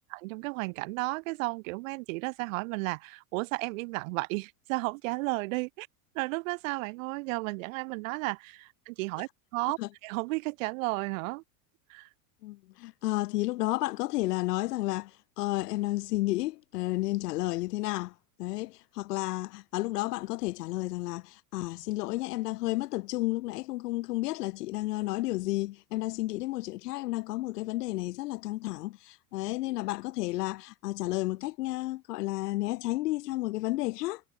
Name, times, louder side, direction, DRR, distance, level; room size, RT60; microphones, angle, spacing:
voice 1, 0.2-5.9 6.1-11.4 11.9-12.1, right 25 dB, 55° right, 1.8 m, -33 dB
voice 2, 12.4-18.1 18.4-34.2, left 19 dB, 80° left, 1.5 m, -32 dB
supercardioid pair, 170°, 46 cm